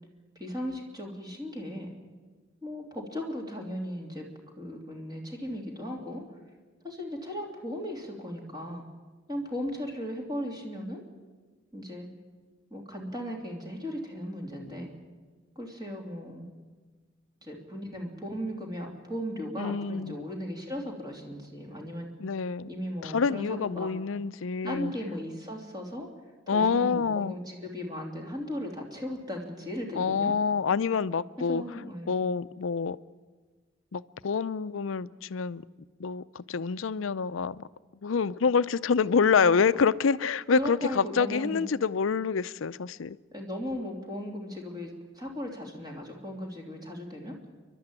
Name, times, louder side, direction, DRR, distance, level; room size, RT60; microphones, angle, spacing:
voice 1, 0.3-1.9 2.6-4.3 4.6-6.2 6.8-8.8 9.3-11.0 11.7-12.1 12.7-14.9 15.5-16.4 17.4-22.1 22.6-23.9 24.6-26.1 26.5-30.3 31.4-32.2 39.4-39.6 40.5-41.6 43.3-47.4, equal, 20° right, 3.2 m, -37 dB
voice 2, 19.6-20.2 22.2-22.7 23.0-24.9 26.5-27.3 29.9-31.6 32.1-33.0 33.9-35.6 36.0-37.7 38.0-43.2, left 5 dB, 80° left, 0.5 m, -27 dB
29.0 x 11.5 x 8.9 m
head